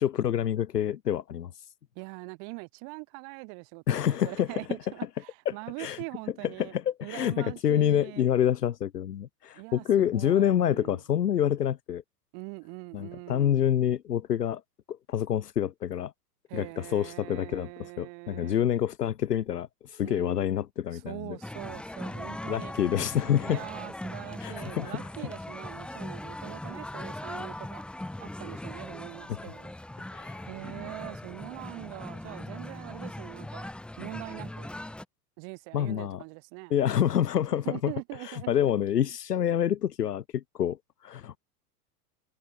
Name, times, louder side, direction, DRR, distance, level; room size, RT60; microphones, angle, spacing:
voice 1, 0.0-1.6 3.9-4.5 5.5-6.0 6.6-12.0 12.9-14.6 14.9-16.1 16.5-21.4 22.5-23.6 24.4-25.0 29.3-29.4 30.1-30.4 35.7-36.2 36.7-37.9 38.2-41.4, left 10 dB, 80° left, 0.8 m, -27 dB
voice 2, 1.9-6.7 7.0-8.3 9.5-11.0 12.3-13.6 16.5-18.6 20.0-20.5 20.9-22.7 23.4-29.7 30.4-33.7 34.0-34.8 35.4-36.7 37.5-38.7, right 40 dB or more, 40° right, 1.2 m, -43 dB
sound 1, 21.4-35.0, left 1 dB, ahead, 0.7 m, -40 dB
figure-of-eight pair, 90°, 47 cm